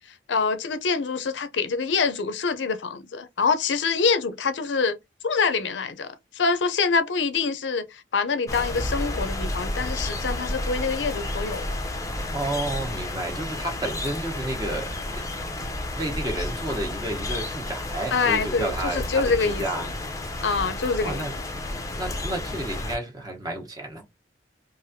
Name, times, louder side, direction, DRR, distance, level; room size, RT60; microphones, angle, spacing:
voice 1, 0.3-5.0 5.2-11.8 18.1-19.8 20.4-21.3, left 5 dB, 90° left, 0.6 m, -25 dB
sound 1, 8.5-23.0, left 1 dB, 20° left, 0.6 m, -31 dB
voice 2, 12.3-15.2 15.5-19.9 21.0-21.3 21.9-24.1, right 1 dB, 20° right, 0.9 m, -31 dB
3.2 x 2.5 x 2.7 m
head